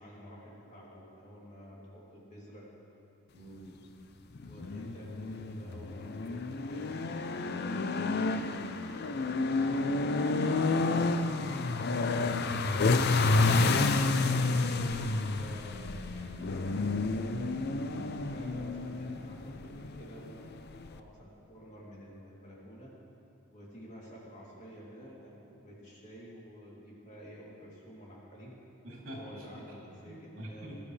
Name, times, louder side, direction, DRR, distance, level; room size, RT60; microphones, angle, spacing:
voice 1, 0.0-2.7 4.4-7.0 7.3-8.4 9.6-13.9 14.4-17.5 18.2-22.9 23.5-28.6 29.2-30.9, equal, 35° left, -6 dB, 3.0 m, -50 dB
voice 2, 3.3-3.8 17.7-18.2 28.8-29.6 30.0-30.8, right 1 dB, 75° right, -4 dB, 3.1 m, -45 dB
sound 1, 4.4-21.0, left 3 dB, 50° left, 0.6 m, -30 dB
20.5 x 12.0 x 3.3 m, 2.8 s
head